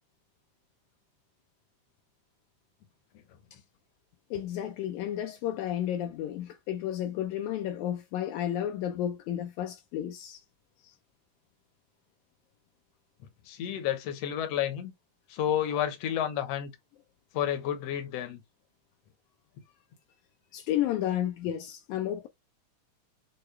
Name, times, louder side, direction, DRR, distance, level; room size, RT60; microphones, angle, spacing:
voice 1, 4.3-10.4 20.5-22.3, left 11 dB, 80° left, 1.9 m, -32 dB
voice 2, 13.5-14.9 15.3-16.7 17.3-18.4, left 10 dB, 65° left, 1.8 m, -30 dB
6.5 x 2.3 x 3.1 m
omnidirectional pair, 3.5 m